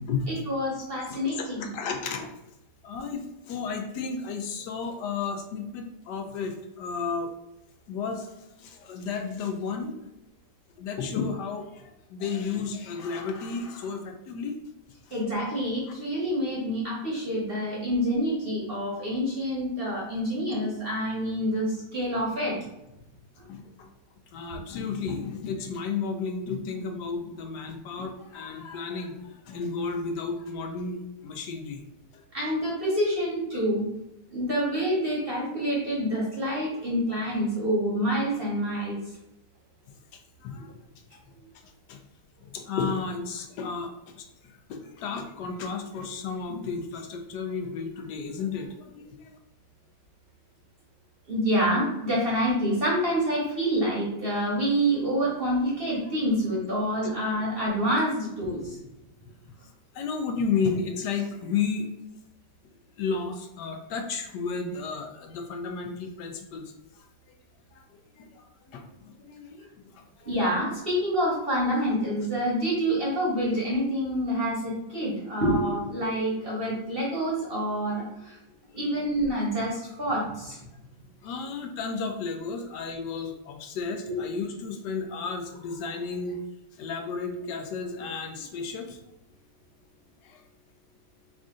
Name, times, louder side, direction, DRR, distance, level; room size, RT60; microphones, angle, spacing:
voice 1, 0.3-1.7 15.1-22.6 32.3-33.8 34.3-39.0 51.3-58.8 70.3-78.4 78.7-80.6 84.1-84.2, equal, 45° right, -5 dB, 0.9 m, -27 dB
voice 2, 1.2-2.3 2.8-7.3 7.9-8.3 8.6-9.9 10.8-14.6 15.1-15.2 23.5-23.9 24.3-29.2 29.5-31.8 32.1-32.2 40.4-40.7 41.1-41.2 41.9-42.0 42.4-43.9 44.2-49.4 57.0-57.1 59.9-61.9 63.0-66.6 68.2-69.7 69.9-70.4 81.2-86.4 86.8-89.0 90.2-90.4, left 5 dB, 75° left, 4 dB, 1.1 m, -33 dB
3.7 x 2.5 x 3.6 m, 0.90 s
omnidirectional pair, 1.9 m